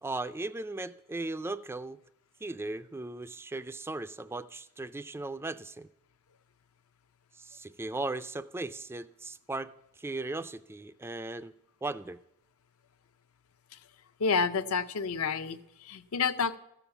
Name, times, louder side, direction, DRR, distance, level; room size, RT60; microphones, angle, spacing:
voice 1, 0.0-2.0 2.4-5.9 7.4-9.7 10.0-11.5 11.8-12.2, right 2 dB, 10° right, 14 dB, 0.3 m, -37 dB
voice 2, 14.2-16.6, left 5 dB, 70° left, 11 dB, 0.6 m, -29 dB
14.0 x 7.1 x 6.9 m, 0.81 s
head